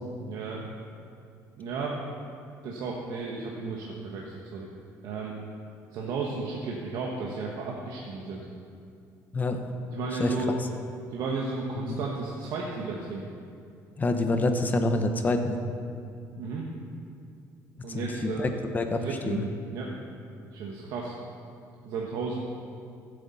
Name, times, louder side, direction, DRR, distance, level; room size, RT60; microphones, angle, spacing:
voice 1, 0.2-0.6 1.6-2.0 2.6-4.7 5.0-5.3 5.9-8.5 9.9-10.5 11.1-13.2 16.4-16.7 17.8-18.5 18.8-19.4 19.7-19.9 20.5-21.1 21.8-22.4, right 4 dB, 75° right, -2 dB, 1.3 m, -33 dB
voice 2, 14.0-15.6 17.9-18.5 18.7-19.4, left 2 dB, 25° left, 6 dB, 1.0 m, -27 dB
15.5 x 8.3 x 4.2 m, 2.4 s
cardioid pair, 115°, 7 cm